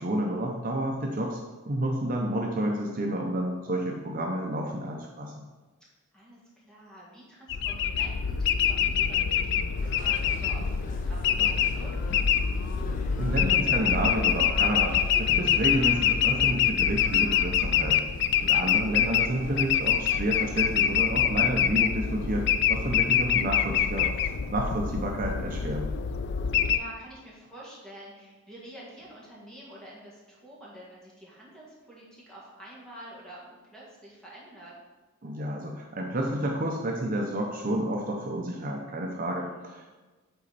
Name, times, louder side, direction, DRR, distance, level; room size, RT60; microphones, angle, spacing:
voice 1, 0.0-1.4 1.7-5.3 13.2-18.0 18.4-24.1 24.5-25.9 35.2-39.9, right 1 dB, 40° right, 0 dB, 0.6 m, -30 dB
voice 2, 6.1-12.3 26.5-34.7 39.4-39.9, right 1 dB, 5° left, -6 dB, 1.8 m, -48 dB
sound 1, 7.5-26.8, left 8 dB, 55° left, 0.3 m, -25 dB
sound 2, 9.8-24.4, left 1 dB, 40° left, 0.7 m, -45 dB
8.0 x 4.3 x 4.1 m, 1.2 s
head